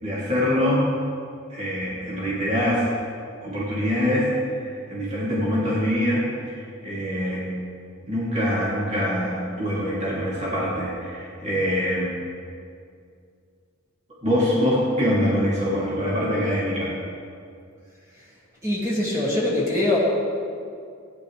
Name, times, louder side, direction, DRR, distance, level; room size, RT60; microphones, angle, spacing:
voice 1, 0.0-0.9 1.5-2.9 3.4-6.3 6.5-7.5 8.1-12.2 14.2-16.9, equal, 35° right, -8 dB, 2.9 m, -24 dB
voice 2, 18.6-20.0, left 1 dB, 15° right, -7 dB, 2.3 m, -23 dB
17.5 x 10.0 x 3.3 m, 2.3 s
head